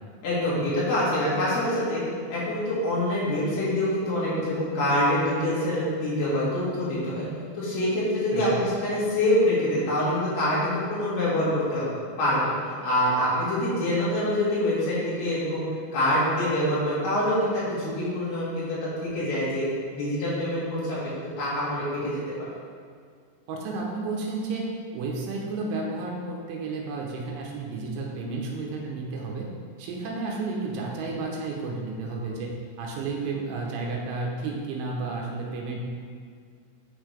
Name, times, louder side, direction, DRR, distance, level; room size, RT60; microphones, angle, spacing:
voice 1, 0.2-2.0 2.3-7.3 7.6-11.9 12.2-15.6 15.9-19.7 19.9-21.0 21.4-22.1 22.4-22.5, left 1 dB, 55° left, -9 dB, 3.7 m, -25 dB
voice 2, 23.5-24.6 24.9-29.5 29.8-35.8, right 3 dB, 80° right, -2 dB, 3.1 m, -32 dB
9.0 x 5.6 x 3.4 m, 2.1 s
omnidirectional pair, 5.9 m